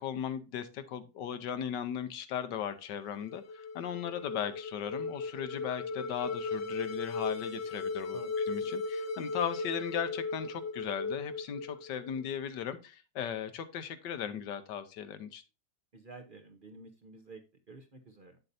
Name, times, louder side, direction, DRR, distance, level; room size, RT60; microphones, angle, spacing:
voice 1, 0.0-8.2 8.5-15.4, left 8 dB, 85° left, 10 dB, 1.5 m, -37 dB
sound 1, 3.1-12.3, left 4 dB, 65° left, 0.6 m, -37 dB
voice 2, 15.9-17.4 17.7-18.4, right 3 dB, 40° right, 5 dB, 0.8 m, -50 dB
8.1 x 7.5 x 2.6 m, 0.30 s
omnidirectional pair, 1.8 m